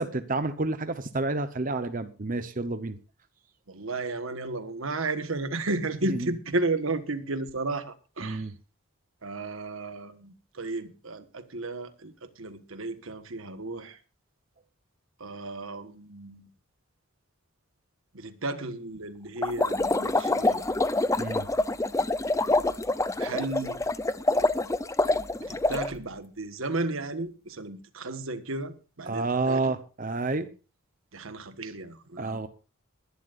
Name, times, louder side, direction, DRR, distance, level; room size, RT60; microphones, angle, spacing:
voice 1, 0.0-3.0 6.1-6.3 8.2-8.5 21.2-21.5 29.1-30.5 32.2-32.5, right 3 dB, 40° right, 9 dB, 0.9 m, -29 dB
voice 2, 3.7-8.5 9.2-14.0 15.2-16.5 18.1-20.8 23.2-23.8 25.4-29.7 31.1-32.4, right 2 dB, 75° right, 9 dB, 1.5 m, -33 dB
sound 1, 19.4-25.9, left 2 dB, 15° left, 0.6 m, -26 dB
21.0 x 11.5 x 2.6 m, 0.34 s
head